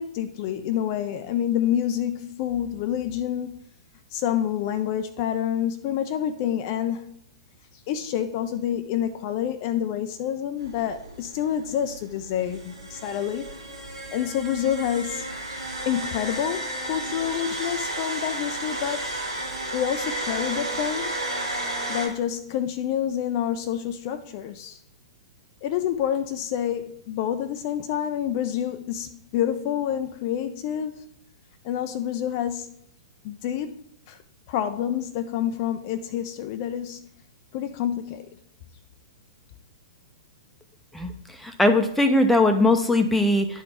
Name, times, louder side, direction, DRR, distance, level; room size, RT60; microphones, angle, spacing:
voice 1, 0.0-3.6 4.1-7.2 7.7-13.5 13.9-19.1 19.7-21.1 21.9-24.8 25.6-31.0 31.6-32.7 33.2-33.8 34.1-34.2 34.5-37.1 37.5-38.3, left 10 dB, 40° left, 0.4 m, -28 dB
sound 1, 10.6-22.1, right 1 dB, 90° right, 2.2 m, -33 dB
voice 2, 41.6-43.5, left 2 dB, 5° left, 0.7 m, -19 dB
11.0 x 3.9 x 3.5 m
figure-of-eight pair, 105°, 3 cm